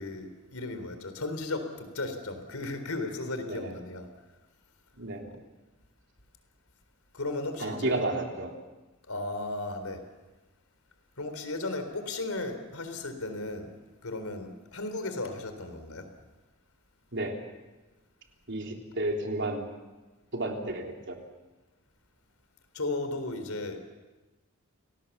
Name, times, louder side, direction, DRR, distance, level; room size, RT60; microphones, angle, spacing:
voice 1, 0.0-4.1 5.3-5.4 7.1-8.0 9.1-10.0 11.2-13.7 14.0-16.1 22.7-23.8, left 2 dB, 85° left, 8 dB, 3.8 m, -35 dB
voice 2, 5.0-5.3 7.6-8.5 17.1-17.3 18.5-19.7 20.3-21.2, right 2 dB, 60° right, 2 dB, 3.5 m, -32 dB
28.5 x 18.5 x 7.3 m, 1.2 s
head